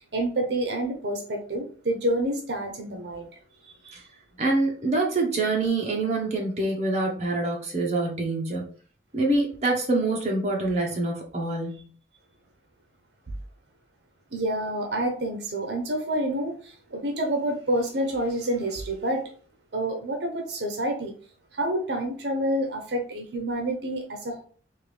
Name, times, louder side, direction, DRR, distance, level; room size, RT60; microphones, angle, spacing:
voice 1, 0.0-3.3 3.8-3.9 14.3-19.3 19.7-21.1 21.5-24.4, right 1 dB, 70° right, 3 dB, 0.8 m, -28 dB
voice 2, 4.4-8.7 9.1-11.9, right 2 dB, 40° right, -1 dB, 1.0 m, -25 dB
3.7 x 2.6 x 3.3 m, 0.43 s
head